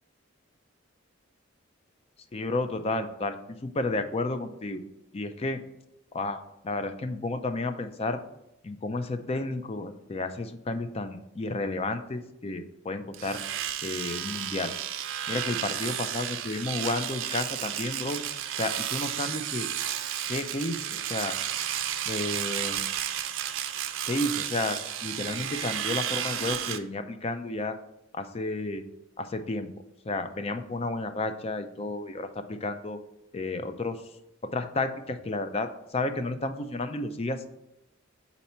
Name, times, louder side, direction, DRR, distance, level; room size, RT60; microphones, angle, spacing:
voice 1, 2.3-4.8 5.1-5.6 6.1-8.2 8.6-13.4 13.8-14.7 15.3-18.2 18.6-19.7 20.3-21.3 22.1-22.9 24.1-27.8 28.1-28.8 29.2-29.7 30.0-33.0 33.3-34.0 34.4-37.5, left 2 dB, 30° left, 8 dB, 0.4 m, -32 dB
Domestic sounds home sounds, 13.1-26.8, right 10 dB, 80° right, 0.5 m, -32 dB
4.3 x 4.1 x 5.6 m, 0.85 s
head